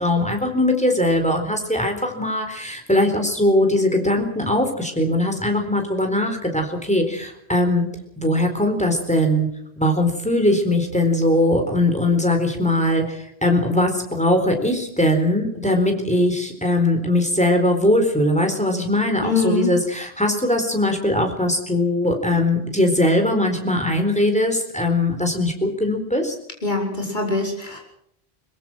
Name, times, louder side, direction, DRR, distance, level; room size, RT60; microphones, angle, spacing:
voice 1, 0.0-7.9 8.2-9.5 9.8-26.3, left 1 dB, 5° left, 4 dB, 4.2 m, -20 dB
voice 2, 19.2-19.7 26.6-27.8, left 3 dB, 45° left, 0 dB, 5.6 m, -23 dB
23.5 x 22.5 x 6.3 m, 0.72 s
omnidirectional pair, 1.1 m